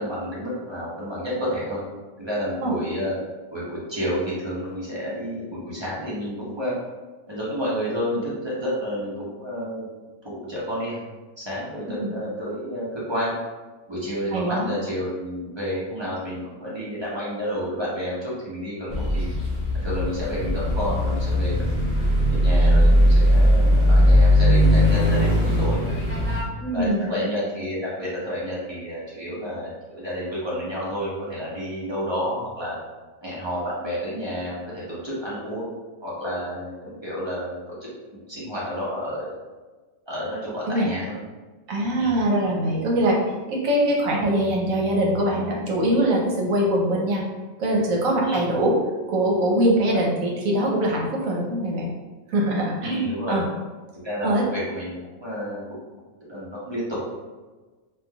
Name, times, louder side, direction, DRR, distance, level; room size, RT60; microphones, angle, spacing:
voice 1, 0.0-1.8 2.2-3.1 3.5-6.7 7.3-9.9 10.2-11.1 11.4-13.4 13.9-19.2 19.8-21.9 22.3-25.8 26.7-32.8 33.2-35.7 36.0-39.4 40.1-41.2 42.0-42.1 48.2-48.4 52.8-53.4 54.0-55.8 56.3-57.0, equal, 30° right, -8 dB, 0.5 m, -30 dB
voice 2, 14.3-14.7 26.6-27.1 40.7-40.9 41.7-43.2 43.5-47.2 47.6-48.8 49.1-51.9 52.3-53.4 54.2-54.4, right 1 dB, 80° right, -2 dB, 1.1 m, -22 dB
sound 1, 18.9-26.4, equal, 10° left, 0.9 m, -19 dB
3.2 x 2.5 x 2.2 m, 1.3 s
omnidirectional pair, 1.4 m